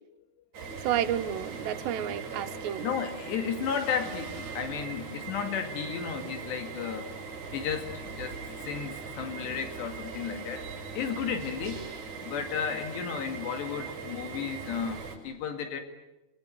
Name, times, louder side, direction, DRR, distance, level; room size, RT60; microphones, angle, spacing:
sound 1, 0.5-15.2, right 5 dB, 45° right, 7.4 m, -40 dB
voice 1, 0.8-3.0, right 11 dB, 90° right, 9 dB, 3.5 m, -31 dB
voice 2, 2.8-7.1 7.5-8.4 8.6-10.7 11.0-11.9 12.2-15.8, left 7 dB, 80° left, 6 dB, 4.2 m, -33 dB
27.5 x 22.5 x 9.3 m, 1.0 s
omnidirectional pair, 4.8 m